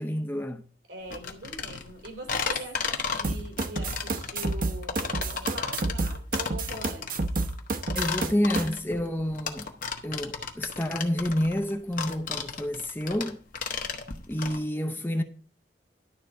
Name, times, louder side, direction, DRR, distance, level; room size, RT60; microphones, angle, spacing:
voice 1, 0.0-0.7 7.9-9.7 10.0-13.4 13.6-13.8 14.3-15.2, left 1 dB, 10° left, 0.6 m, -29 dB
voice 2, 0.9-7.3, right 1 dB, 75° right, 2.9 m, -42 dB
sound 1, 1.1-14.6, left 5 dB, 50° left, 1.2 m, -34 dB
sound 2, 3.2-8.7, right 2 dB, 50° right, 0.9 m, -30 dB
11.5 x 3.9 x 7.5 m
head